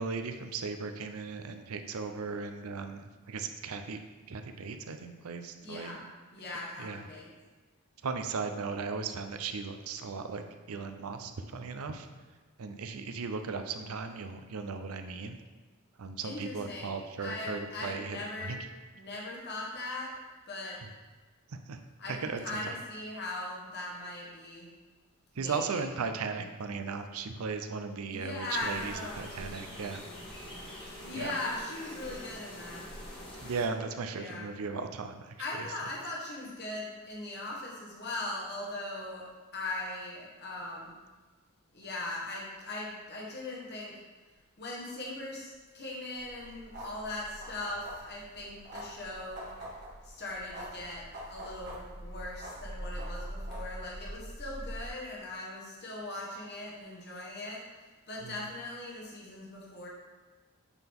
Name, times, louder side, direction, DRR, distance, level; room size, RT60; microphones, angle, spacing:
voice 1, 0.0-4.0 4.3-6.0 6.8-7.1 8.0-12.1 12.6-15.4 16.0-18.7 20.8-20.9 21.5-21.8 22.1-22.7 25.4-30.0 31.1-31.3 33.4-35.7 58.2-58.5, right 4 dB, 70° right, 7 dB, 0.5 m, -37 dB
voice 2, 5.6-6.0 6.3-7.3 16.2-18.6 18.9-20.1 20.5-20.8 22.0-24.7 25.4-25.9 28.1-29.3 31.0-32.8 34.1-34.5 35.4-39.2 39.5-40.9 41.7-43.9 44.6-49.5 50.1-51.0 51.3-57.6 58.1-59.9, left 2 dB, 50° left, -3 dB, 1.2 m, -39 dB
sound 1, 28.5-33.7, equal, 25° left, 1.2 m, -45 dB
sound 2, 46.2-54.9, right 1 dB, 50° right, 1.6 m, -43 dB
8.2 x 3.8 x 3.5 m, 1.3 s
head